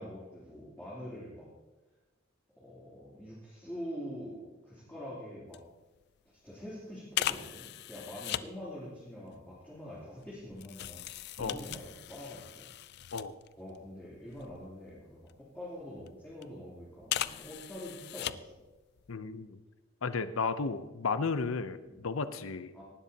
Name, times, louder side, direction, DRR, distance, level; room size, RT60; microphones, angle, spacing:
voice 1, 0.0-1.5 2.6-5.6 6.4-11.0 11.4-12.7 13.6-18.5 21.8-22.0 22.7-22.8, equal, 10° left, -10 dB, 3.2 m, -45 dB
sound 1, 5.5-5.7 6.0-6.2 7.1-8.5 9.3-13.8 14.1-15.5 16.1-16.5 17.0-18.7 19.0-19.1, left 12 dB, 50° left, 0.3 m, -39 dB
voice 2, 19.1-19.6 20.0-22.7, left 4 dB, 80° left, 12 dB, 0.7 m, -33 dB
18.5 x 12.5 x 2.9 m, 1.1 s
head